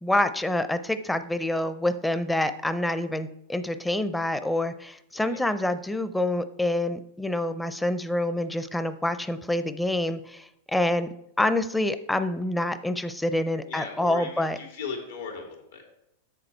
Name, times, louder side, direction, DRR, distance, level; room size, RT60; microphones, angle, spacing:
voice 1, 0.0-11.1 11.4-14.6, left 1 dB, 5° left, 11 dB, 0.5 m, -27 dB
voice 2, 13.7-15.8, left 5 dB, 85° left, 2 dB, 2.3 m, -37 dB
7.4 x 6.8 x 4.4 m, 0.79 s
hypercardioid pair, 120°, 0 cm